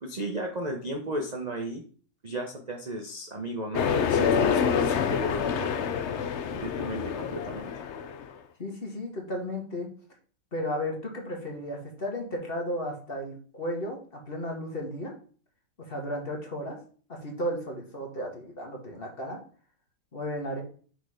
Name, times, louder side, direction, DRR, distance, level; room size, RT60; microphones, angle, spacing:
voice 1, 0.0-1.8 2.2-5.9 6.5-7.7, right 1 dB, 35° right, 2 dB, 0.6 m, -35 dB
sound 1, 3.7-8.3, left 7 dB, 80° left, 0.6 m, -27 dB
voice 2, 8.6-9.9 10.5-15.1 15.8-16.8 17.1-19.4 20.1-20.6, equal, 35° left, 1 dB, 1.6 m, -34 dB
6.3 x 4.5 x 4.9 m, 0.43 s
omnidirectional pair, 2.0 m